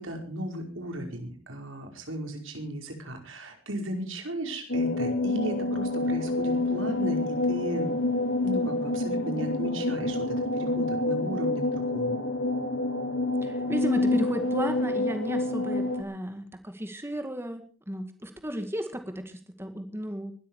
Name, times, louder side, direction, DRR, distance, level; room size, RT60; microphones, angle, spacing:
voice 1, 0.0-7.9 8.4-12.2, right 1 dB, 85° right, 3 dB, 5.1 m, -35 dB
sound 1, 4.7-16.0, left 2 dB, 80° left, 2.3 m, -28 dB
voice 2, 13.4-20.3, equal, 10° right, 6 dB, 2.0 m, -34 dB
20.5 x 13.0 x 4.8 m, 0.40 s
head